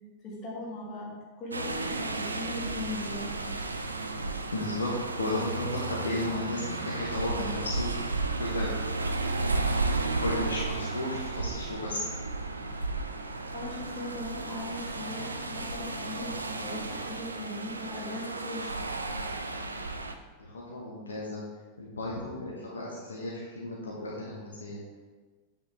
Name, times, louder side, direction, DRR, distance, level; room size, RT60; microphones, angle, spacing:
voice 1, 0.2-1.1 1.4-3.5 13.5-18.8, left 2 dB, 35° left, -4 dB, 2.5 m, -39 dB
sound 1, 1.5-20.1, right 3 dB, 80° right, 0.5 m, -33 dB
voice 2, 4.5-8.0 8.4-8.8 10.2-12.1 20.4-21.4 21.8-24.8, left 1 dB, 75° left, -3 dB, 1.2 m, -34 dB
8.2 x 6.3 x 3.6 m, 1.3 s
figure-of-eight pair, 90°, 0 cm